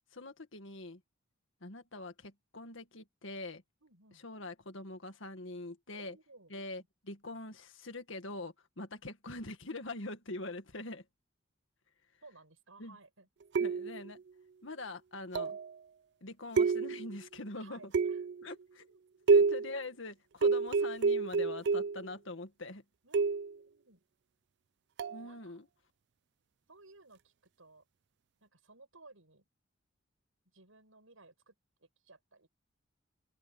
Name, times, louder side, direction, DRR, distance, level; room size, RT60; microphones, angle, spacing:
voice 1, 0.1-1.0 1.6-3.6 4.2-6.2 6.5-11.0 12.8-13.0 13.6-14.2 14.6-15.6 16.2-17.9 18.4-18.9 19.3-22.8 25.1-25.7, left 2 dB, 75° left, 1.9 m, -43 dB
voice 2, 3.8-4.2 6.0-6.5 12.2-13.3 17.5-19.4 23.0-24.0 25.2-25.6 26.7-27.8 28.4-29.5 30.5-31.5 31.8-32.5, right 3 dB, 85° right, 7.5 m, -59 dB
sound 1, 13.5-14.1 15.3-15.7 16.6-17.2 17.9-18.4 19.3-19.8 20.4-22.1 23.1-23.6 25.0-25.2, right 4 dB, 55° right, 0.4 m, -28 dB
open air
head